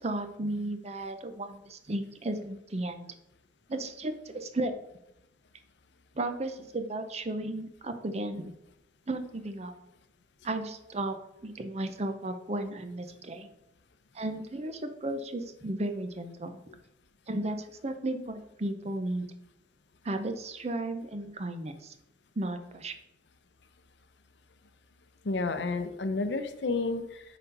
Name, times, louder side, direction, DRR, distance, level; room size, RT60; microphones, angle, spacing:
voice 1, 0.0-3.1 3.7-4.7 6.1-8.5 9.1-9.7 10.4-11.2 11.4-13.5 14.1-16.6 17.3-19.3 20.0-21.9 22.4-22.9, right 2 dB, 40° right, 8 dB, 0.7 m, -34 dB
voice 2, 25.2-27.2, left 3 dB, 85° left, 10 dB, 0.7 m, -31 dB
6.0 x 4.2 x 5.3 m, 0.84 s
head